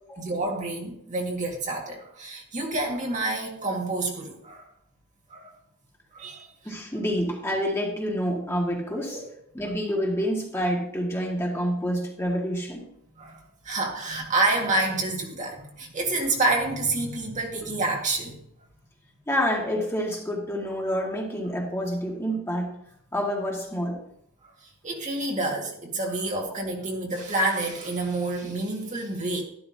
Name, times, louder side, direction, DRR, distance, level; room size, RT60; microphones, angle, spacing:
voice 1, 0.2-4.7 5.3-5.5 6.1-6.5 9.1-9.3 13.2-18.4 24.8-29.4, right 2 dB, 35° right, 0 dB, 2.0 m, -28 dB
voice 2, 6.6-9.2 9.5-12.9 19.3-22.7 23.1-24.0, equal, 15° left, -1 dB, 1.9 m, -28 dB
12.0 x 12.0 x 2.8 m, 0.73 s
head